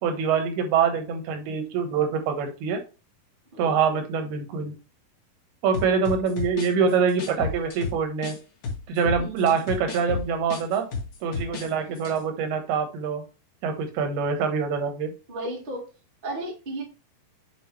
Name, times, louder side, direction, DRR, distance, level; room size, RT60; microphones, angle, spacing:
voice 1, 0.0-2.8 3.6-4.7 5.6-8.3 8.9-10.9 11.2-13.2 13.6-15.1, right 6 dB, 85° right, 6 dB, 3.1 m, -25 dB
voice 2, 3.5-4.0 9.2-9.6 15.3-15.8 16.2-16.8, right 1 dB, 35° right, 0 dB, 0.8 m, -34 dB
sound 1, 5.7-8.4 8.6-11.7 12.0-12.2, left 4 dB, 60° left, 2.9 m, -32 dB
7.6 x 4.4 x 3.2 m, 0.32 s
omnidirectional pair, 4.4 m